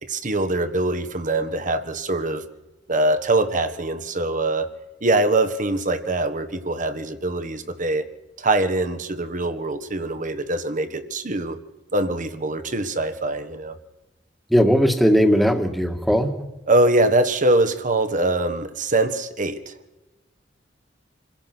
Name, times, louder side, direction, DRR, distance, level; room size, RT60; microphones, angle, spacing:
voice 1, 0.0-2.4 2.9-4.7 5.0-8.1 8.4-11.6 11.9-13.8 16.7-19.7, right 2 dB, 45° right, 9 dB, 1.5 m, -23 dB
voice 2, 14.5-16.5, equal, ahead, 5 dB, 1.8 m, -18 dB
27.0 x 16.5 x 6.1 m, 1.1 s
head